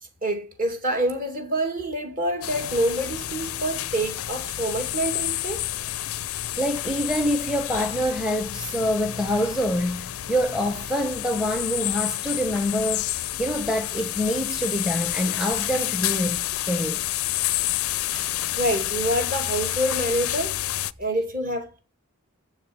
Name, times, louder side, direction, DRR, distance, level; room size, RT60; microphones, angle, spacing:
voice 1, 0.2-6.1 18.1-20.6 21.0-21.8, right 1 dB, 40° right, 2.5 m, -27 dB
sound 1, 2.4-20.9, left 14 dB, 75° left, 0.5 m, -29 dB
voice 2, 6.5-17.0, equal, 5° right, 0.9 m, -26 dB
7.5 x 7.2 x 8.0 m
head